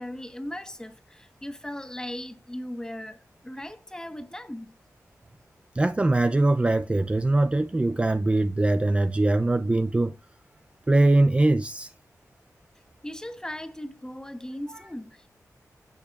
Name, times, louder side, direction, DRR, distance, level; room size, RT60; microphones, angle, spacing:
voice 1, 0.0-4.8 13.0-15.3, left 1 dB, 10° left, 1.1 m, -38 dB
voice 2, 5.7-10.2 10.9-11.9 14.7-14.8, right 2 dB, 20° right, 0.4 m, -22 dB
15.5 x 6.4 x 2.4 m
wide cardioid pair, 100°, 6 cm